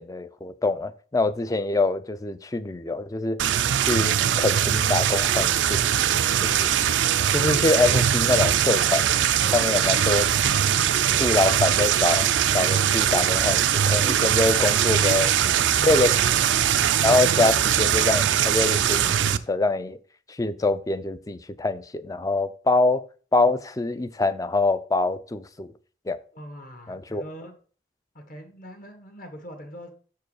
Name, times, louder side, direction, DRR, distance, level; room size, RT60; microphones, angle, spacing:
voice 1, 0.0-3.4 3.7-5.9 6.4-6.7 7.3-9.1 9.5-10.2 11.2-12.3 12.5-15.3 15.8-16.1 17.0-20.0 20.4-23.0 23.3-25.7 26.1-26.2 26.9-27.2, left 3 dB, 20° left, 13 dB, 0.4 m, -24 dB
sound 1, 3.4-19.4, right 9 dB, 80° right, 0.4 m, -21 dB
voice 2, 9.4-10.2 15.1-15.3 15.8-16.1 26.3-27.5 28.1-29.9, equal, 50° left, 6 dB, 1.4 m, -42 dB
6.3 x 4.6 x 4.8 m, 0.40 s
head